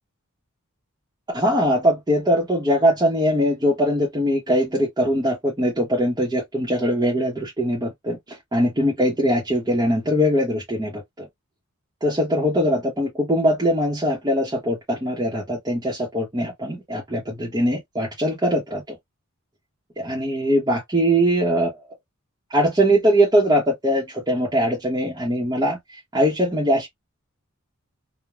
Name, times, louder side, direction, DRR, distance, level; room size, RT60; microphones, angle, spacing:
voice 1, 1.3-11.3 12.0-19.0 20.0-21.8 22.5-25.8 26.1-26.9, equal, 15° right, 0.8 m, -21 dB
3.1 x 2.1 x 2.3 m
head